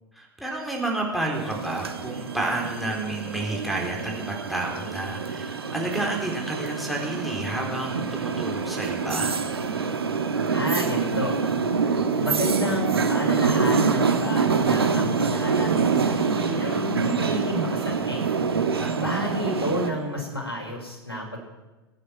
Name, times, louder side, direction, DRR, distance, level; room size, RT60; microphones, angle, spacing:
voice 1, 0.2-9.4 18.8-19.2, right 2 dB, ahead, -2 dB, 4.1 m, -30 dB
sound 1, 1.3-19.9, right 5 dB, 75° right, 1.5 m, -26 dB
voice 2, 10.5-11.4 12.2-18.2 19.0-21.5, equal, 85° left, 1 dB, 5.1 m, -30 dB
23.5 x 9.8 x 5.9 m, 1.1 s
figure-of-eight pair, 90°, 13 cm